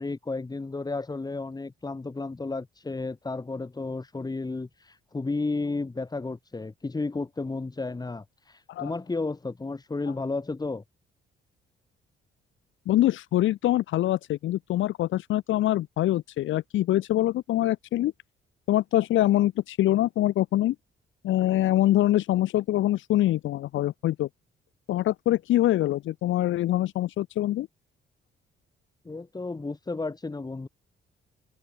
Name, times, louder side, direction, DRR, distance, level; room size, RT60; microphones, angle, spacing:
voice 1, 0.0-8.2 8.8-10.8 29.0-30.7, left 3 dB, 20° left, 2.2 m, -32 dB
voice 2, 12.9-18.1 18.7-20.8 21.2-24.3 24.9-27.7, left 14 dB, 75° left, 0.8 m, -24 dB
open air
cardioid pair, 90°, 20 cm